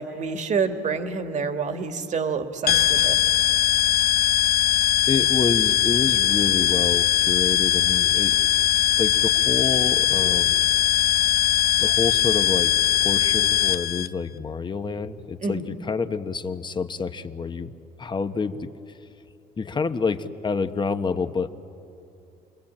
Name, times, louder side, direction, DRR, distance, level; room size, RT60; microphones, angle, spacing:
voice 1, 0.0-3.2 15.4-15.7, right 5 dB, 45° right, 7 dB, 2.0 m, -28 dB
sound 1, 2.7-14.1, left 12 dB, 65° left, 0.6 m, -20 dB
voice 2, 5.1-8.4 9.0-10.6 11.8-17.7 18.0-18.7 19.6-21.5, left 5 dB, 25° left, 9 dB, 1.1 m, -28 dB
28.5 x 22.0 x 8.8 m, 2.6 s
cardioid pair, 110°, 17 cm